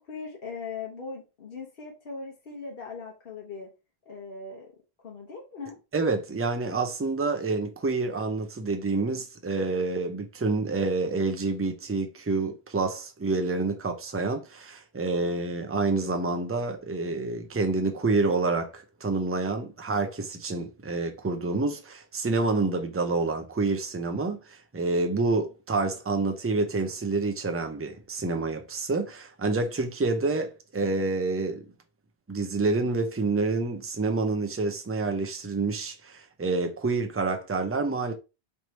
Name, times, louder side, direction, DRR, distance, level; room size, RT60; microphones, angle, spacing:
voice 1, 0.0-3.7 4.1-4.7 5.0-5.8, left 4 dB, 60° left, 1.1 m, -39 dB
voice 2, 5.9-31.7 32.3-38.1, right 3 dB, 20° right, 0.5 m, -28 dB
3.3 x 3.0 x 4.1 m
omnidirectional pair, 1.1 m